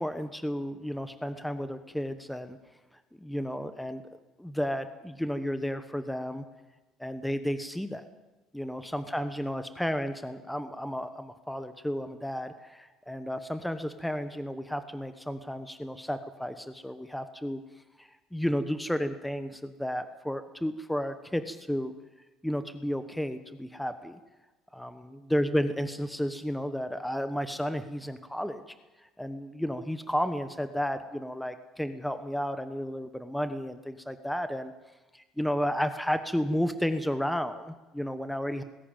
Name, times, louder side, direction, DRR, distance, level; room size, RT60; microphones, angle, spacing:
voice 1, 0.0-2.6 3.2-4.0 4.4-6.4 7.0-8.0 8.5-17.6 18.0-21.9 22.4-24.2 24.7-28.6 29.0-34.7 35.1-38.6, equal, 5° left, 10 dB, 1.1 m, -32 dB
19.5 x 16.5 x 9.0 m, 1.1 s
cardioid pair, 135°, 0 cm